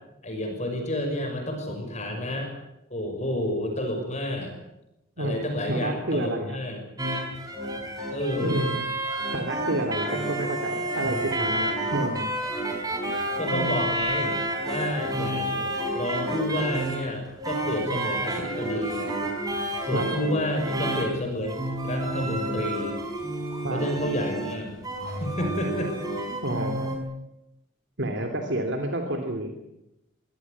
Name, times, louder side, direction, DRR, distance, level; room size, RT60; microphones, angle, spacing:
voice 1, 0.2-2.5 2.9-4.5 5.2-6.8 8.1-8.6 11.0-11.7 13.4-14.4 14.7-19.1 19.8-22.9 23.7-24.8 25.1-25.9, left 1 dB, 35° left, 4 dB, 6.1 m, -30 dB
voice 2, 5.2-6.6 8.4-8.8 9.3-12.3 19.9-20.0 23.6-23.8 26.4-26.9 28.0-29.5, right 1 dB, 60° right, 4 dB, 2.9 m, -29 dB
sound 1, 7.0-27.0, right 1 dB, 20° right, 5.1 m, -30 dB
24.0 x 17.0 x 9.7 m, 0.88 s
head